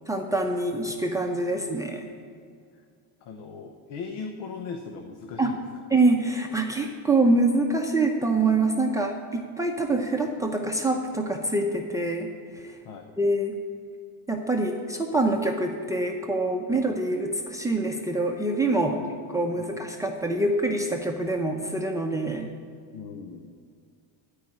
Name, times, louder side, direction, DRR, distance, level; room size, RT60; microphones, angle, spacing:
voice 1, 0.1-2.1 5.4-5.5 5.9-12.3 12.5-12.7 13.2-13.6 14.3-19.0 19.3-22.5, right 2 dB, 5° right, 2 dB, 0.7 m, -25 dB
voice 2, 3.2-5.6 12.8-13.1 16.7-16.9 18.9-19.0 19.6-19.7 22.9-23.5, left 5 dB, 70° left, 5 dB, 1.0 m, -39 dB
13.5 x 4.8 x 8.7 m, 2.2 s
cardioid pair, 135°, 46 cm